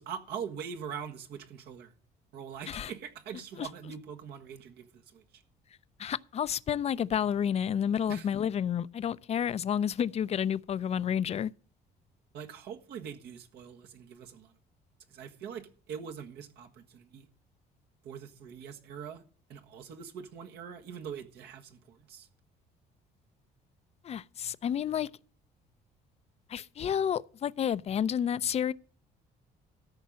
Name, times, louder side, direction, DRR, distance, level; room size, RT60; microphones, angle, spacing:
voice 1, 0.0-1.9 2.3-5.4 8.1-8.3 12.3-14.5 15.1-17.3 18.0-19.2 19.5-22.3, right 7 dB, 75° right, 1.6 m, -43 dB
voice 2, 6.0-11.5 24.0-25.1 26.5-28.7, left 8 dB, 40° left, 0.5 m, -30 dB
13.5 x 5.4 x 7.4 m
cardioid pair, 110°, 17 cm